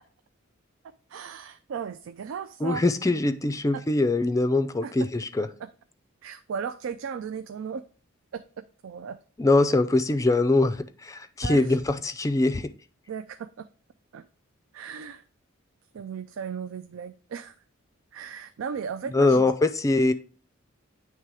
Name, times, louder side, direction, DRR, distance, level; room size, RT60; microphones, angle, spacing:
voice 1, 1.1-2.8 4.8-5.1 5.6-5.7 6.2-7.8 8.3-9.2 11.4-11.8 13.1-13.7 14.1-14.2 14.7-15.2 15.9-17.6 18.1-19.5, right 6 dB, 75° right, 0.4 m, -36 dB
voice 2, 2.6-5.5 9.4-12.7 19.1-20.1, left 2 dB, 15° left, 0.4 m, -23 dB
8.9 x 3.3 x 4.7 m
head